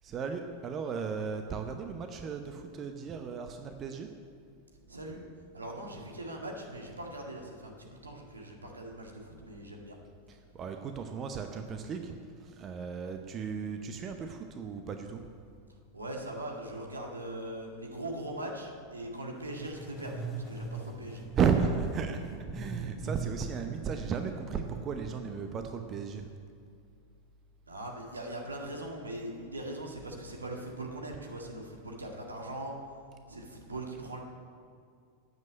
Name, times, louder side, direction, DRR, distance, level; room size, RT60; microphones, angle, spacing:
voice 1, 0.0-4.1 10.3-15.2 21.3-22.2 22.5-26.3, right 6 dB, 30° right, 6 dB, 0.8 m, -34 dB
voice 2, 4.9-5.2 5.5-10.0 15.9-21.2 27.7-32.7 33.3-34.2, right 1 dB, 75° right, 0 dB, 1.9 m, -40 dB
sound 1, 19.5-26.3, right 4 dB, 10° left, 2.6 m, -42 dB
9.3 x 7.7 x 8.7 m, 2.3 s
figure-of-eight pair, 90°, 0 cm